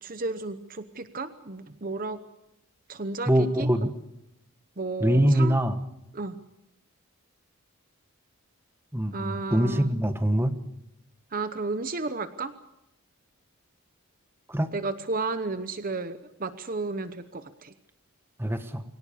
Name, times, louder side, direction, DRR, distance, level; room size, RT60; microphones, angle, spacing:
voice 1, 0.0-2.2 2.9-3.7 4.8-5.6 6.1-6.4 9.1-9.9 11.3-12.5 14.7-17.7, right 3 dB, 40° right, 11 dB, 0.9 m, -33 dB
voice 2, 3.3-3.9 5.0-5.8 8.9-10.5 14.5-14.7 18.4-18.8, equal, 10° right, 8 dB, 1.3 m, -23 dB
24.5 x 18.0 x 8.5 m, 0.88 s
head